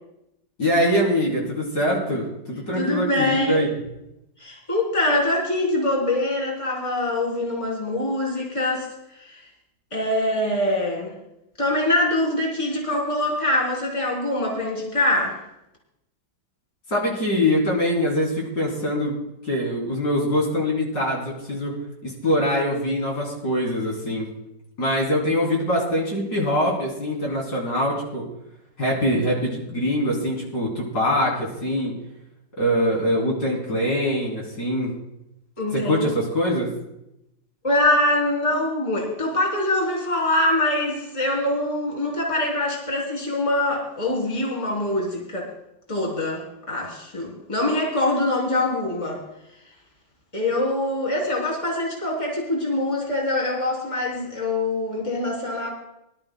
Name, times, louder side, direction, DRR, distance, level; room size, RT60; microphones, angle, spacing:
voice 1, 0.6-3.8 16.9-19.1 19.4-21.7 22.0-24.3 24.8-28.2 28.8-31.9 32.6-34.9 35.7-36.7, equal, 55° left, -3 dB, 3.7 m, -23 dB
voice 2, 2.7-3.6 4.4-8.9 9.2-9.5 9.9-11.2 11.6-15.4 35.6-36.1 37.6-45.5 45.9-49.2 50.3-55.7, left 1 dB, 15° left, -3 dB, 3.1 m, -24 dB
23.5 x 12.0 x 2.2 m, 0.85 s
omnidirectional pair, 2.1 m